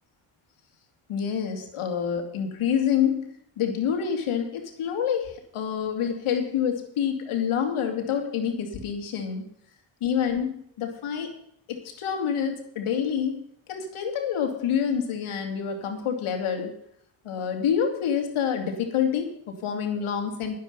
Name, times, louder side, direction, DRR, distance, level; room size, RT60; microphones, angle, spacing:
voice 1, 1.1-9.4 10.0-11.3 11.7-13.4 13.7-16.7 17.2-20.5, left 8 dB, 75° left, 3 dB, 2.8 m, -27 dB
11.5 x 10.5 x 5.5 m, 0.69 s
supercardioid pair, 50°, 50 cm